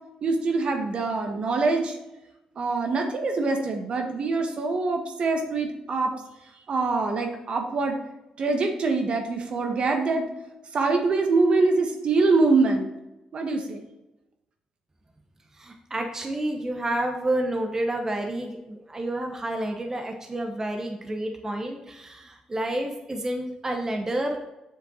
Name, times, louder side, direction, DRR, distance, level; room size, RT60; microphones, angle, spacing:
voice 1, 0.2-2.0 2.5-6.1 6.7-8.0 8.4-10.3 10.7-12.9 13.3-13.8, right 3 dB, 55° right, 3 dB, 1.5 m, -24 dB
voice 2, 15.5-24.4, right 1 dB, 25° right, 3 dB, 1.1 m, -29 dB
7.8 x 6.6 x 3.9 m, 0.96 s
cardioid pair, 85°, 2 cm